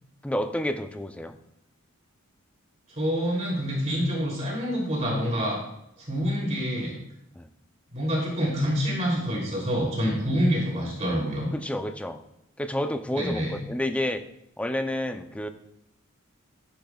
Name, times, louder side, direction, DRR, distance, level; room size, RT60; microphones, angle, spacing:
voice 1, 0.2-1.4 7.3-7.5 11.5-12.2 12.6-14.2 14.6-15.5, left 1 dB, 5° left, 7 dB, 0.6 m, -29 dB
voice 2, 3.0-5.6 6.0-6.9 7.9-11.5 13.2-13.6, equal, 35° right, -3 dB, 3.1 m, -27 dB
13.0 x 10.5 x 2.4 m, 0.78 s
head